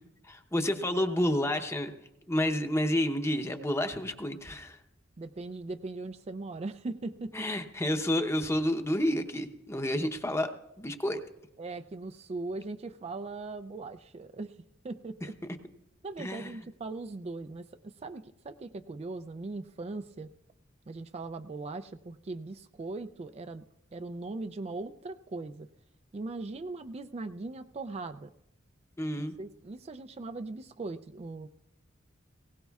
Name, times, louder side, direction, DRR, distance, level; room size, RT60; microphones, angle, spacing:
voice 1, 0.2-1.9 2.3-4.8 7.3-10.5 10.8-11.2 16.2-16.5 29.0-29.3, left 1 dB, 15° left, 7 dB, 0.8 m, -30 dB
voice 2, 5.2-7.3 11.6-14.6 14.8-15.4 16.0-20.3 20.9-23.6 23.9-25.7 26.1-28.3 29.4-31.5, right 3 dB, 35° right, 9 dB, 0.4 m, -39 dB
20.0 x 17.5 x 2.4 m, 0.87 s
head